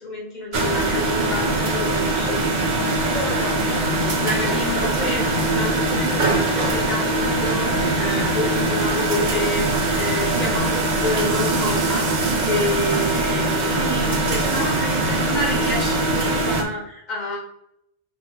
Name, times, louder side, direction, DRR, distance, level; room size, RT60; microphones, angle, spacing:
voice 1, 0.0-2.4 4.2-9.7 9.9-17.4, left 1 dB, 40° left, -3 dB, 1.4 m, -28 dB
sound 1, 0.5-16.6, right 2 dB, 55° right, 0.5 m, -22 dB
voice 2, 2.9-5.1, left 4 dB, 80° left, 2 dB, 1.0 m, -35 dB
4.1 x 2.2 x 4.4 m, 0.77 s
omnidirectional pair, 1.3 m